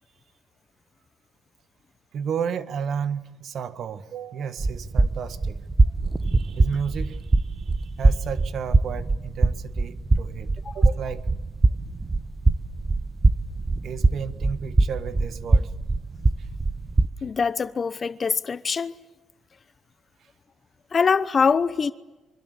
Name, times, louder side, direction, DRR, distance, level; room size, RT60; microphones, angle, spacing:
voice 1, 2.1-5.6 6.2-11.3 13.8-15.7 16.4-16.5, right 7 dB, 65° right, 1.6 m, -33 dB
sound 1, 4.6-17.1, right 2 dB, 25° right, 0.9 m, -23 dB
voice 2, 17.2-18.9 20.9-21.9, left 5 dB, 40° left, 0.9 m, -23 dB
25.0 x 25.0 x 8.4 m
cardioid pair, 90°, 0 cm